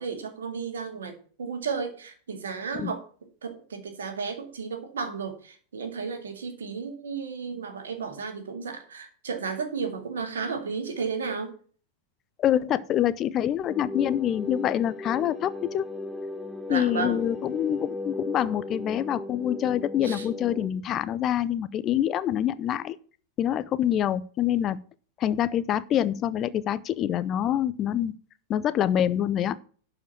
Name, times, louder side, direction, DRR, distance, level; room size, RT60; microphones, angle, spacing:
voice 1, 0.0-3.0 3.4-11.5 16.7-17.2 20.0-20.3, right 5 dB, 65° right, 2.2 m, -33 dB
voice 2, 12.4-15.9 16.7-23.0 23.4-24.8 25.2-28.2 28.5-29.6, left 11 dB, 30° left, 0.6 m, -26 dB
sound 1, 13.7-20.7, left 2 dB, ahead, 1.3 m, -36 dB
12.0 x 5.1 x 7.1 m
figure-of-eight pair, 90°, 0 cm